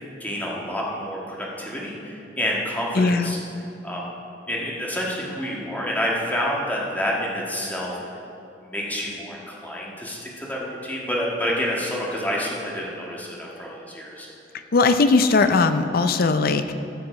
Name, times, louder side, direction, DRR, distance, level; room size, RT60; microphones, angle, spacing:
voice 1, 0.2-3.4 3.8-4.1 4.5-8.0 8.6-14.3, equal, 10° left, -4 dB, 1.6 m, -28 dB
voice 2, 2.9-3.3 14.7-16.6, left 3 dB, 55° left, 9 dB, 0.5 m, -19 dB
15.0 x 6.0 x 4.9 m, 2.7 s
head